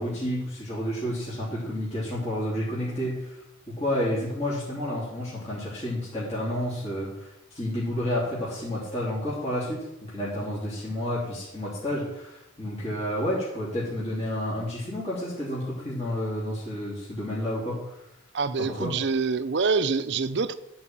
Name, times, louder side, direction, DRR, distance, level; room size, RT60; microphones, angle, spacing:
voice 1, 0.0-3.4 3.7-7.3 7.5-18.0 18.6-18.9, left 1 dB, 30° left, 3.3 m, -30 dB
voice 2, 18.3-20.5, right 4 dB, 55° right, 0.6 m, -26 dB
12.5 x 4.8 x 7.5 m
head